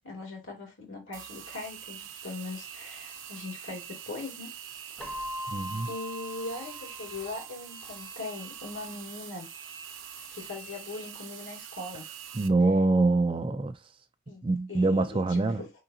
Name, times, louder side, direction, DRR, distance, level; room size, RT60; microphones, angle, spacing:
voice 1, 0.0-4.5 5.9-9.5 10.3-12.0 14.3-15.7, left 3 dB, 75° left, 2.2 m, -40 dB
sound 1, 1.1-12.5, right 8 dB, 75° right, 0.7 m, -44 dB
Keyboard (musical), 5.0-7.7, left 1 dB, 5° left, 0.7 m, -40 dB
voice 2, 5.5-5.9 12.3-13.7 14.4-15.6, right 3 dB, 25° right, 0.4 m, -25 dB
4.9 x 3.7 x 2.7 m
head